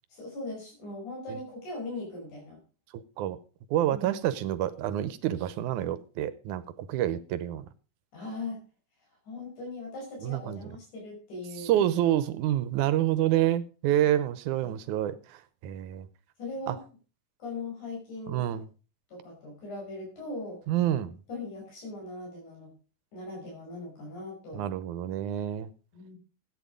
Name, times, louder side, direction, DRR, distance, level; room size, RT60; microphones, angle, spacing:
voice 1, 0.1-2.6 3.9-4.2 8.1-8.6 9.3-11.8 14.6-14.7 16.4-16.8 17.4-18.4 19.1-20.6 21.3-22.7 23.1-24.7 25.9-26.2, left 2 dB, 80° left, 6.9 m, -39 dB
voice 2, 2.9-3.4 3.7-7.7 10.2-10.6 11.6-16.1 16.7-16.8 18.3-18.7 20.7-21.2 24.5-25.7, right 12 dB, 90° right, 2.3 m, -28 dB
14.0 x 9.0 x 5.2 m
omnidirectional pair, 3.5 m